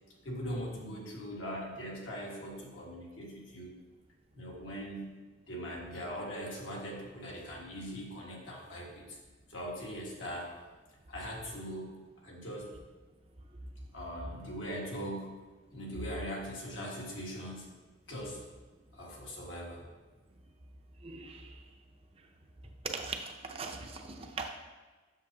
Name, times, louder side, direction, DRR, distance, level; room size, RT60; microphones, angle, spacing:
voice 1, 0.2-3.8 4.3-5.1 5.5-9.2 9.5-10.5 11.1-12.7 13.9-15.3 15.7-17.7 18.1-18.4 18.9-19.9, equal, 75° left, -3 dB, 1.7 m, -41 dB
voice 2, 21.0-21.6 22.9-24.5, right 4 dB, 30° right, 3 dB, 0.5 m, -40 dB
7.4 x 6.9 x 2.8 m, 1.3 s
head